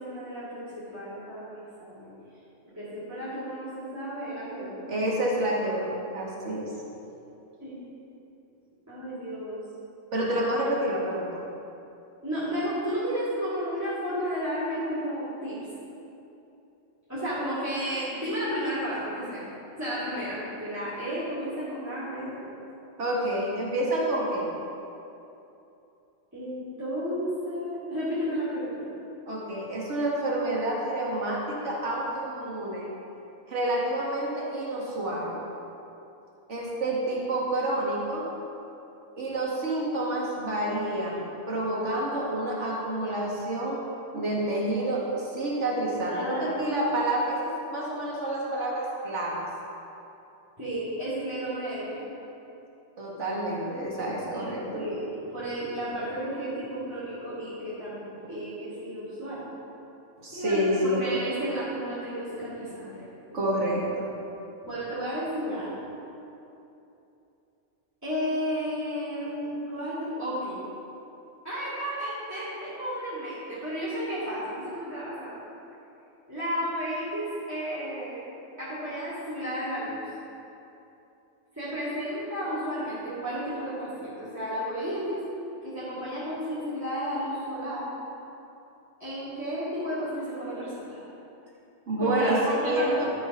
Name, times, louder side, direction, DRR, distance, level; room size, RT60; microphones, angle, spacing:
voice 1, 0.0-2.1 2.7-4.8 7.6-7.8 8.9-9.6 12.2-15.6 17.1-19.5 19.7-22.4 26.3-28.9 46.1-47.0 50.6-52.1 54.3-59.4 60.3-63.0 63.3-63.4 64.6-65.9 68.0-70.6 71.4-75.4 76.3-78.2 78.6-80.0 81.5-85.2 85.6-87.9 89.0-91.0 92.0-93.1, equal, 15° right, -13 dB, 2.5 m, -32 dB
voice 2, 4.9-6.7 10.1-11.3 23.0-24.5 29.3-32.9 33.5-35.4 36.5-38.2 39.2-43.8 44.1-49.4 53.0-54.8 60.2-61.0 63.3-64.1 91.9-92.4 92.7-93.1, right 1 dB, 75° right, -5 dB, 2.0 m, -28 dB
12.5 x 4.8 x 5.4 m, 2.9 s
omnidirectional pair, 1.2 m